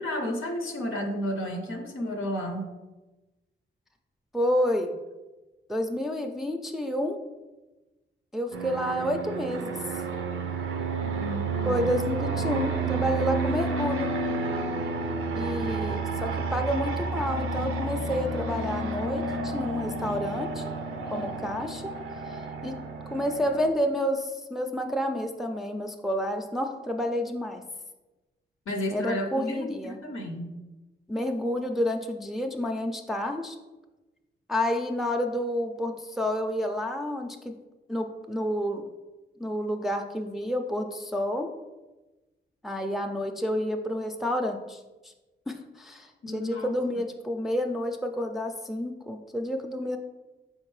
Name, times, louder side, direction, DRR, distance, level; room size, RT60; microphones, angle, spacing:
voice 1, 0.0-2.7 11.0-12.0 28.7-30.6 46.2-47.1, equal, 80° left, 2 dB, 0.6 m, -32 dB
voice 2, 4.3-4.9 5.7-7.2 8.3-9.8 11.6-14.1 15.4-20.7 21.1-21.9 22.3-22.8 23.1-27.6 28.9-30.0 31.1-33.6 34.5-37.5 37.9-38.8 39.4-41.5 42.6-44.8 45.5-50.0, equal, ahead, 3 dB, 0.4 m, -29 dB
Fixed-wing aircraft airplane, 8.5-23.7, right 3 dB, 80° right, 0.5 m, -31 dB
4.5 x 3.6 x 3.1 m, 1.1 s
cardioid pair, 50°, 21 cm